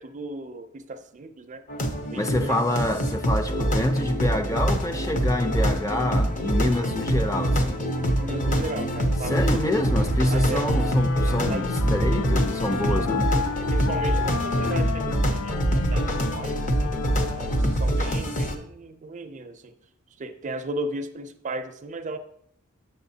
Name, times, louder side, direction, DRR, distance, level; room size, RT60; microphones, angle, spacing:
voice 1, 0.0-1.6 2.1-2.9 8.0-9.8 10.3-10.6 11.5-11.7 12.9-13.0 13.7-16.9 17.4-19.7 20.2-22.2, right 2 dB, 35° right, 0.4 m, -35 dB
sound 1, 1.7-18.6, equal, 35° left, 0.8 m, -25 dB
voice 2, 2.2-7.9 9.3-13.4, left 1 dB, 15° left, 0.5 m, -26 dB
Wind instrument woodwind instrument, 10.5-18.0, left 6 dB, 70° left, 0.4 m, -32 dB
7.8 x 6.7 x 2.7 m
head